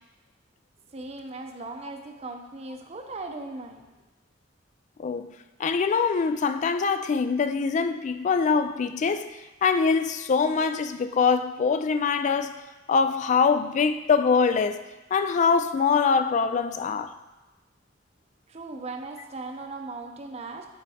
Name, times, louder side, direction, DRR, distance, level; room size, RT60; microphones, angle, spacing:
voice 1, 0.9-4.0 18.5-20.7, right 3 dB, 35° right, 0.6 m, -38 dB
voice 2, 5.6-12.6 12.9-14.8 15.1-17.1, left 5 dB, 40° left, 0.3 m, -23 dB
9.8 x 4.4 x 2.8 m
head